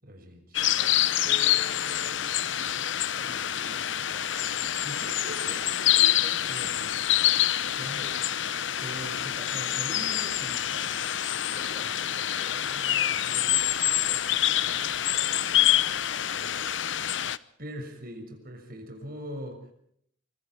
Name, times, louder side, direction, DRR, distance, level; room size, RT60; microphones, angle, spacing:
voice 1, 0.0-0.7 4.8-7.0 7.7-8.2 8.7-11.0 17.6-19.6, equal, 50° right, 5 dB, 6.4 m, -41 dB
sound 1, 0.5-17.4, left 12 dB, 65° left, 0.9 m, -26 dB
voice 2, 0.8-4.7 7.8-8.3 11.5-17.3, left 1 dB, 35° left, 7 dB, 4.9 m, -49 dB
25.0 x 24.5 x 4.6 m, 0.67 s
head